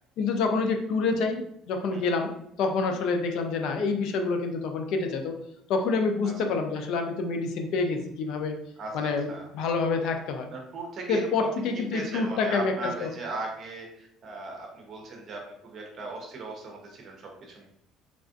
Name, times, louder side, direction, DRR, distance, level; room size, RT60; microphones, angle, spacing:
voice 1, 0.2-2.3 2.6-5.3 5.7-8.6 8.9-9.3 9.5-10.5 11.1-13.1, left 4 dB, 65° left, 4 dB, 0.4 m, -27 dB
voice 2, 8.8-9.5 10.5-11.5 11.9-17.7, right 2 dB, 40° right, 0 dB, 0.8 m, -38 dB
3.4 x 2.4 x 2.5 m, 0.73 s
cardioid pair, 135°, 0 cm